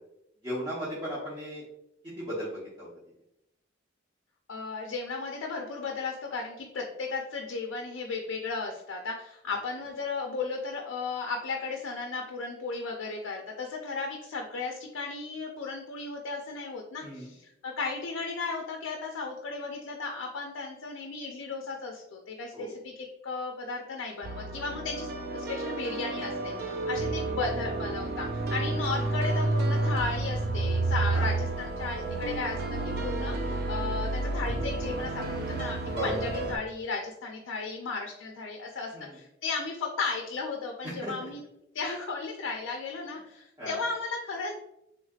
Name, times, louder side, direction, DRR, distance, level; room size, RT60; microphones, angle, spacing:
voice 1, 0.4-1.6 2.2-2.9 17.0-17.3 22.5-22.7 31.1-31.2 35.9-36.1 38.9-39.1 40.8-41.1 43.6-43.8, equal, 20° right, -10 dB, 0.8 m, -35 dB
voice 2, 4.5-41.4 41.7-44.5, left 4 dB, 80° left, 2 dB, 0.4 m, -35 dB
sound 1, 24.2-36.6, right 2 dB, 55° right, 0.3 m, -30 dB
3.4 x 3.2 x 2.3 m, 0.83 s
head